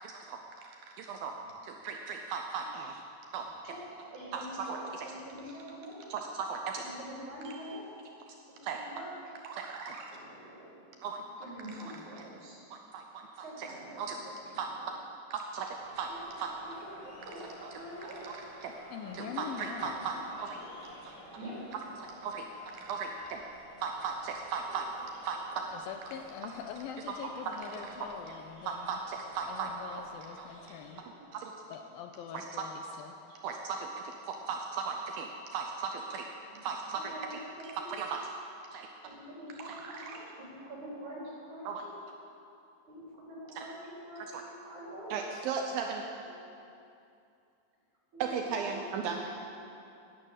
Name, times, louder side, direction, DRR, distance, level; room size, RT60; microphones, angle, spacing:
voice 1, 0.0-0.4 0.6-1.3 1.6-3.0 3.3-3.5 4.3-5.1 6.1-6.8 7.5-7.6 8.6-8.8 9.5-10.2 11.0-11.2 12.7-13.7 14.0-14.2 14.6-14.7 15.3-16.1 16.4-16.5 18.2-18.7 19.1-20.6 21.0-21.1 22.0-22.5 22.8-23.4 23.8-24.9 25.2-25.4 27.8-28.0 28.7-30.0 30.4-30.5 31.3-31.5 32.3-32.4 33.4-33.9 34.3-36.3 36.6-37.4 37.7-38.2 38.7-38.9 39.6-40.2 41.7-41.8 43.6-43.7 44.3-44.4 45.1-46.1 48.2-49.2, right 6 dB, 75° right, 3 dB, 2.4 m, -37 dB
voice 2, 3.3-4.8 5.0-6.1 6.8-7.9 8.5-9.2 9.7-10.8 11.4-12.6 13.4-14.8 16.1-16.2 16.6-18.2 19.2-20.3 20.5-20.8 21.4-21.6 25.6-25.8 27.1-28.2 29.8-30.3 31.0-31.6 32.6-33.1 34.0-34.4 35.7-35.9 36.5-36.6 36.9-38.1 39.0-41.9 42.9-45.2 46.2-46.5 48.1-49.4, equal, 50° right, -6 dB, 5.2 m, -47 dB
sound 1, 15.7-30.9, equal, 55° left, 4.7 m, -52 dB
voice 3, 18.9-20.1 25.7-29.0 29.5-31.0 31.7-33.1, left 8 dB, 80° left, 6 dB, 2.3 m, -43 dB
11.5 x 11.0 x 8.9 m, 2.6 s
omnidirectional pair, 4.5 m